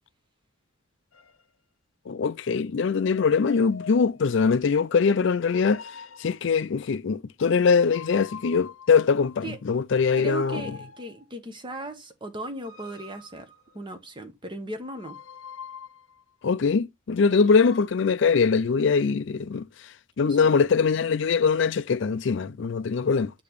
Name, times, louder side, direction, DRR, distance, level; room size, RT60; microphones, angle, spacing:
sound 1, 1.1-1.4 2.9-4.4 5.4-6.5 7.8-9.5 10.1-11.3 12.5-14.1 14.9-16.2 17.2-17.9, left 5 dB, 75° left, 0.8 m, -45 dB
voice 1, 2.1-5.8 6.2-10.6 16.4-19.7 20.2-23.3, left 5 dB, 60° left, 0.4 m, -22 dB
voice 2, 10.2-15.2 20.2-20.5, right 1 dB, 25° right, 0.9 m, -37 dB
6.7 x 2.9 x 5.1 m
head